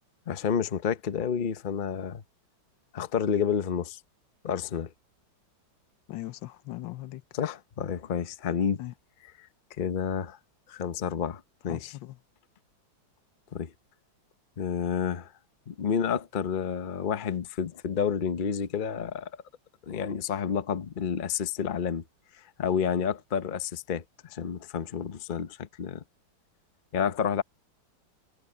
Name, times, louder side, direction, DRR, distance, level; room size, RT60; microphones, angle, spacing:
voice 1, 0.3-2.2 2.9-4.0 4.4-4.9 7.3-8.8 9.4-9.5 9.8-10.4 10.7-11.9 13.5-13.7 14.6-15.3 15.7-19.3 19.9-22.0 22.3-26.0 26.9-27.4, left 7 dB, 40° left, 0.7 m, -30 dB
voice 2, 6.1-7.2 8.8-8.9 11.7-12.2, left 16 dB, 80° left, 1.4 m, -39 dB
omnidirectional pair, 2.0 m